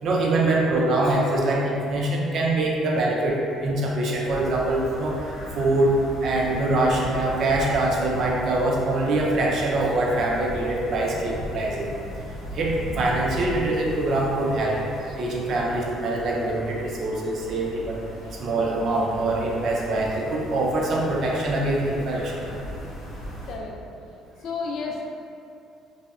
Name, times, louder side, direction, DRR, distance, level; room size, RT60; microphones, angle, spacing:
voice 1, 0.0-5.2 5.5-11.9 12.5-14.8 15.2-18.0 18.4-22.4, right 2 dB, 50° right, -2 dB, 0.4 m, -24 dB
sound 1, 4.2-23.5, equal, 80° left, 0.7 m, -37 dB
voice 2, 23.5-23.8 24.4-25.0, left 4 dB, 60° left, 0 dB, 0.3 m, -31 dB
2.7 x 2.0 x 2.4 m, 2.5 s
cardioid pair, 130°, 0 cm